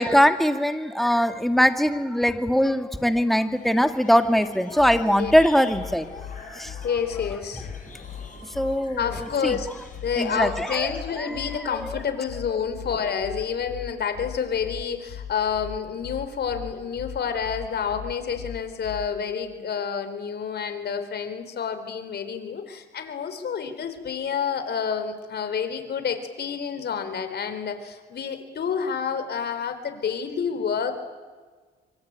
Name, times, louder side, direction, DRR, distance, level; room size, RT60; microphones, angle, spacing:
voice 1, 0.0-6.2 6.5-6.7 8.6-9.6 10.2-11.9, equal, ahead, 7 dB, 2.1 m, -22 dB
sound 1, 3.5-11.6, left 4 dB, 40° left, 6.7 m, -45 dB
sound 2, 4.8-19.2, left 9 dB, 90° left, 4.9 m, -39 dB
voice 2, 6.8-7.7 9.0-9.7 10.0-30.9, left 7 dB, 55° left, 8 dB, 4.2 m, -29 dB
25.0 x 25.0 x 8.9 m, 1.4 s
cardioid pair, 90°, 20 cm